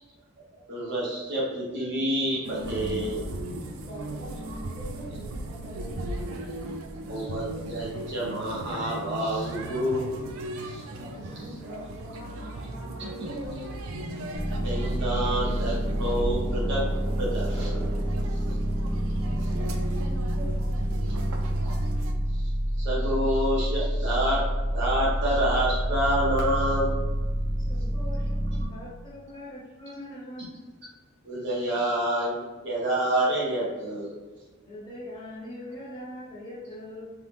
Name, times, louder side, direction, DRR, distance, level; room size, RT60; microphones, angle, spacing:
voice 1, 0.5-3.2 7.1-10.1 10.6-10.8 13.0-13.1 14.6-16.8 17.2-17.8 22.8-24.4 24.7-26.9 31.2-34.1, right 1 dB, 55° right, -6 dB, 0.7 m, -28 dB
sound 1, 2.4-22.1, right 1 dB, 75° right, 0.3 m, -37 dB
voice 2, 3.9-6.2 11.0-13.7 18.8-20.1 20.4-21.3, equal, 35° right, -8 dB, 1.3 m, -43 dB
sound 2, 14.3-28.7, equal, 15° right, 0.9 m, -28 dB
voice 3, 27.6-30.4 34.7-37.1, left 1 dB, 20° left, -7 dB, 0.6 m, -42 dB
2.7 x 2.0 x 3.3 m, 1.3 s
head